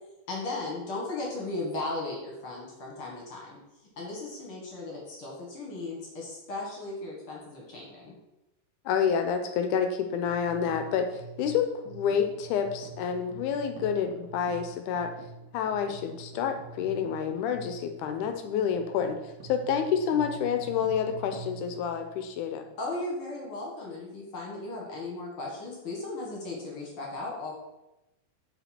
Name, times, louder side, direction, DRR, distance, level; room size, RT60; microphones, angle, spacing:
voice 1, 0.3-3.6 4.0-8.1 22.8-27.5, left 2 dB, 50° left, -2 dB, 2.2 m, -36 dB
voice 2, 8.9-15.1 15.5-22.6, left 7 dB, 80° left, 6 dB, 2.1 m, -28 dB
sound 1, 10.2-22.6, right 3 dB, 70° right, 2.3 m, -46 dB
7.0 x 5.1 x 4.3 m, 0.94 s
omnidirectional pair, 3.6 m